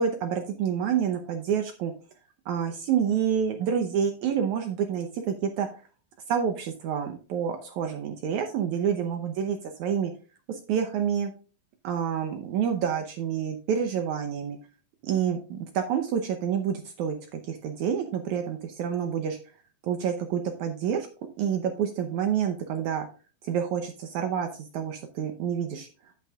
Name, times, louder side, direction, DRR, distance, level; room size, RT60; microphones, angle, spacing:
voice 1, 0.0-1.9 2.5-5.7 6.3-10.1 10.5-11.3 11.8-14.6 15.0-19.4 19.8-21.1 21.4-23.1 23.4-25.9, right 8 dB, 75° right, 6 dB, 1.8 m, -28 dB
10.5 x 8.4 x 2.4 m, 0.35 s
omnidirectional pair, 4.2 m